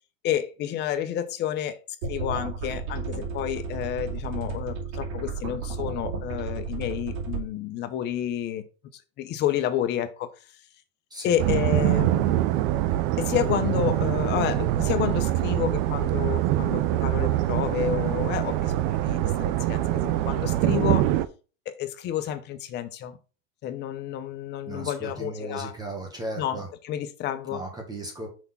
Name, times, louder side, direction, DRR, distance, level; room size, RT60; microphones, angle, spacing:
voice 1, 0.2-1.8 2.1-8.6 8.9-10.3 11.2-12.4 13.2-21.1 21.7-23.2 23.6-25.8 26.4-27.6, left 11 dB, 25° left, 0.7 m, -30 dB
sound 1, 2.0-7.4, right 4 dB, 60° right, 2.8 m, -33 dB
sound 2, 11.4-21.2, right 14 dB, 40° right, 0.6 m, -24 dB
voice 2, 24.7-26.7 27.5-28.3, right 2 dB, 10° right, 1.4 m, -36 dB
6.1 x 3.5 x 5.7 m
supercardioid pair, 145°, 40 cm